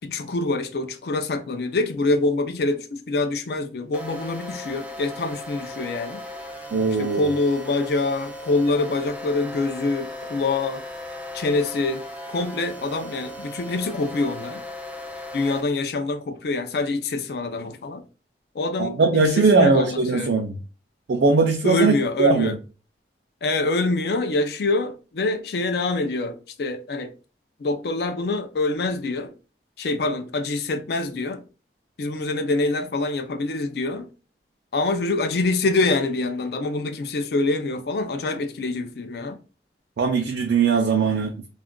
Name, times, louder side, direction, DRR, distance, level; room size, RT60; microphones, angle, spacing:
voice 1, 0.0-6.2 7.0-10.8 11.3-14.6 15.3-18.0 18.5-20.4 21.6-22.5 23.4-27.1 27.6-29.3 29.8-31.5 32.0-34.1 34.7-39.4, left 2 dB, 60° left, 0.4 m, -25 dB
sound 1, 3.9-15.6, left 1 dB, 10° right, 0.3 m, -37 dB
voice 2, 6.7-7.3 18.8-20.6 21.1-21.9 22.2-22.6 40.0-41.5, right 4 dB, 75° right, 0.4 m, -20 dB
2.4 x 2.2 x 3.5 m
head